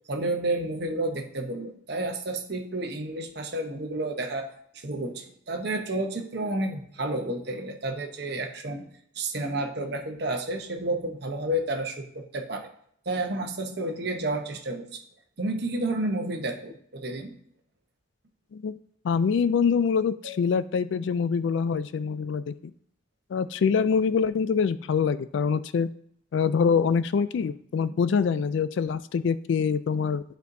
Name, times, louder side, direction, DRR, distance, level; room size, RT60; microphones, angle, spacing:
voice 1, 0.1-8.9 9.1-12.7 13.1-15.0 15.4-17.3 20.2-20.3, right 2 dB, 55° right, 3 dB, 0.9 m, -31 dB
voice 2, 19.0-22.5 23.3-25.9 26.3-30.2, left 6 dB, 65° left, 15 dB, 0.3 m, -25 dB
10.5 x 4.4 x 2.7 m, 0.65 s
head